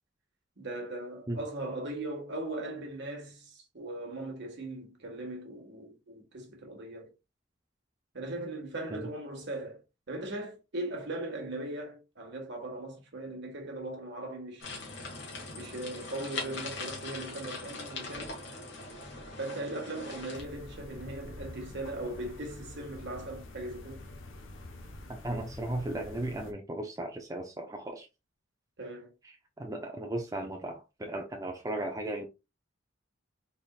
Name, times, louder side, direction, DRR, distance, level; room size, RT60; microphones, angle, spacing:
voice 1, 0.6-7.1 8.1-9.8 10.1-14.7 15.5-18.4 19.4-24.1 28.8-29.1, right 2 dB, 60° right, 1.5 m, -39 dB
sound 1, 14.6-20.4, left 3 dB, 60° left, 1.6 m, -41 dB
sound 2, 20.3-26.5, left 1 dB, 80° left, 0.8 m, -46 dB
voice 2, 25.2-28.1 29.2-32.2, right 1 dB, 20° right, 0.6 m, -36 dB
4.1 x 3.5 x 2.4 m
head